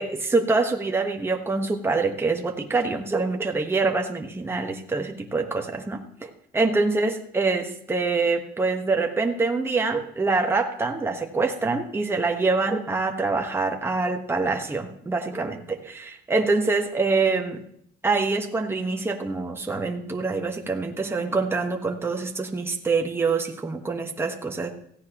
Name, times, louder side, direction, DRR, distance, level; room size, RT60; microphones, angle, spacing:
voice 1, 0.0-17.6 18.0-24.7, right 3 dB, 15° right, 3 dB, 1.2 m, -25 dB
16.5 x 15.0 x 3.0 m, 0.70 s
cardioid pair, 110°, 17 cm